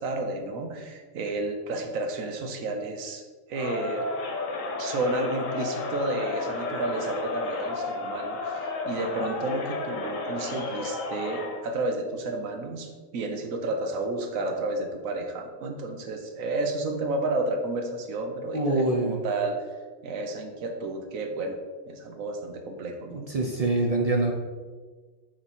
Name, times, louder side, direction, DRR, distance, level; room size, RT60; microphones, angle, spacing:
voice 1, 0.0-3.2 3.5-4.0 4.8-19.6 20.0-21.6 21.9-23.3, right 2 dB, 85° right, 4 dB, 1.2 m, -31 dB
Crowd, 3.5-11.6, left 3 dB, 80° left, 1.3 m, -32 dB
voice 2, 18.5-19.2 23.1-24.3, right 2 dB, 50° right, 0 dB, 0.4 m, -25 dB
7.7 x 3.2 x 4.2 m, 1.4 s
omnidirectional pair, 1.4 m